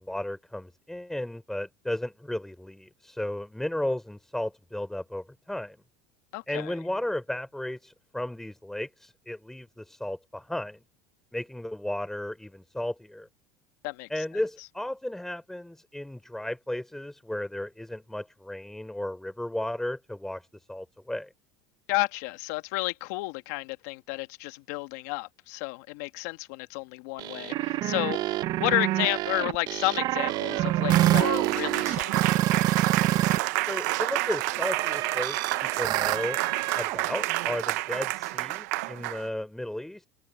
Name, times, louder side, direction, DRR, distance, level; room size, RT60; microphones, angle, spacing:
voice 1, 0.0-5.8 6.5-10.8 11.3-13.3 14.1-21.3 33.6-36.4 36.7-40.1, left 1 dB, 5° left, 4.3 m, -34 dB
voice 2, 6.3-6.7 13.8-14.1 21.9-32.1, left 23 dB, 75° left, 1.7 m, -31 dB
sound 1, 27.2-33.4 33.7-37.0, right 15 dB, 50° right, 0.9 m, -27 dB
Applause, 30.1-39.3, right 20 dB, 80° right, 0.9 m, -30 dB
supercardioid pair, 115°, 9 cm